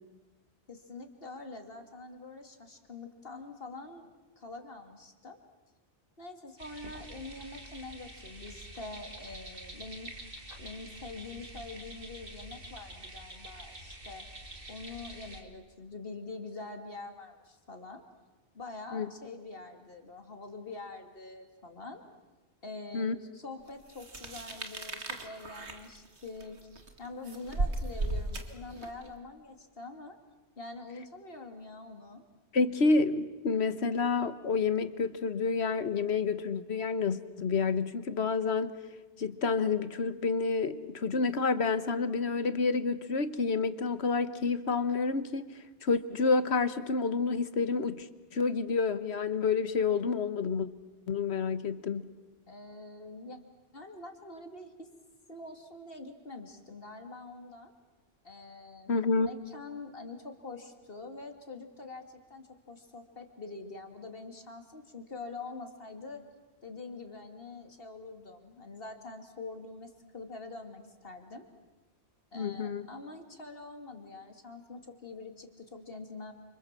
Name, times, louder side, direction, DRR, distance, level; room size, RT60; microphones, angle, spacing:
voice 1, 0.7-5.4 6.2-10.1 10.6-14.3 14.7-18.0 18.5-22.0 22.6-26.6 27.0-30.2 30.6-32.2 52.5-53.4 53.7-54.9 55.3-57.7 58.2-66.2 66.6-71.5 72.3-76.3, left 3 dB, 60° left, 5 dB, 2.9 m, -45 dB
sound 1, 6.6-15.4, right 1 dB, 55° right, 3.0 m, -47 dB
sound 2, 23.9-29.1, right 2 dB, 90° right, 2.5 m, -36 dB
voice 2, 32.5-38.7 39.2-45.5 45.8-48.1 48.3-50.7 51.1-52.1 58.9-59.3 72.3-72.9, left 4 dB, 75° left, 12 dB, 1.5 m, -29 dB
30.0 x 26.0 x 7.6 m, 1.2 s
omnidirectional pair, 1.1 m